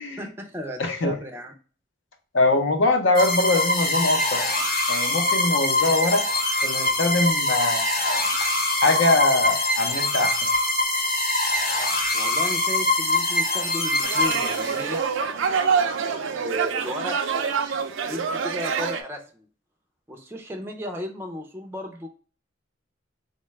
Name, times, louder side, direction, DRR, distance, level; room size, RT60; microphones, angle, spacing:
voice 1, 0.2-1.5 12.1-19.5 20.1-22.1, equal, 10° right, 0.4 m, -35 dB
voice 2, 0.8-1.2 2.3-4.4 4.9-6.3 6.6-7.8 8.8-10.4, left 2 dB, 75° left, 0.7 m, -22 dB
sound 1, 3.1-15.0, left 2 dB, 45° left, 0.9 m, -23 dB
sound 2, 14.0-19.0, right 6 dB, 80° right, 0.4 m, -26 dB
4.0 x 2.2 x 3.1 m
head